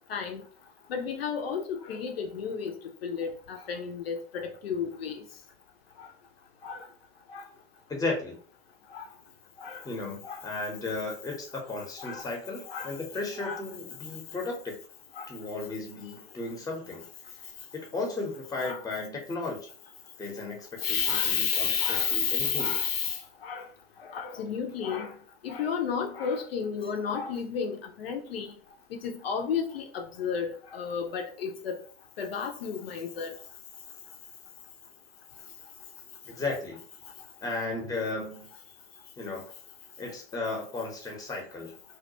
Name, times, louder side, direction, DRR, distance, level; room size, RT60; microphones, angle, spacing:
voice 1, 0.1-0.4 0.9-2.7 3.0-5.2 6.6-6.8 7.3-7.4 8.9-9.1 9.6-9.8 10.3-10.4 12.0-12.2 12.7-12.9 13.4-13.6 15.2-15.3 18.6-18.8 20.8-23.7 24.1-25.1 25.4-28.5 29.0-31.8 32.2-33.3, left 6 dB, 70° left, 0.5 m, -31 dB
voice 2, 7.9-8.4 9.8-14.8 15.3-17.0 17.7-19.7 20.2-22.9 36.2-36.8 37.4-38.5 39.2-39.5 40.0-41.8, left 3 dB, 10° left, 0.7 m, -35 dB
2.2 x 2.2 x 2.7 m
figure-of-eight pair, 75°, 31 cm